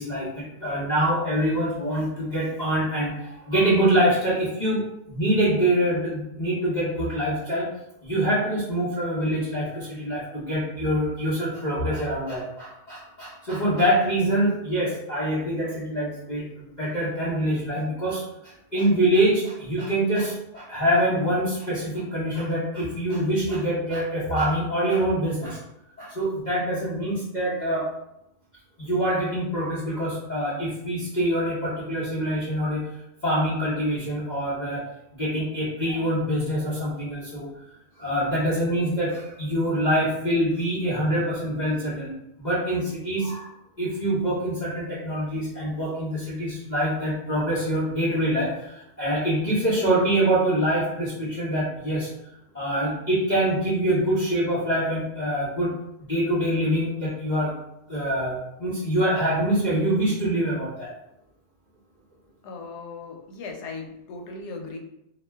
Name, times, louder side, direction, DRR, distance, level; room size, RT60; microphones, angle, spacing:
voice 1, 0.0-7.7 8.0-25.6 26.0-27.9 28.8-33.0 33.2-37.5 38.0-52.1 52.5-55.7 56.1-57.5 57.9-60.9, right 1 dB, 45° left, -9 dB, 0.6 m, -25 dB
voice 2, 62.4-64.8, left 3 dB, 85° left, 2 dB, 1.1 m, -37 dB
2.6 x 2.2 x 3.3 m, 0.83 s
omnidirectional pair, 1.7 m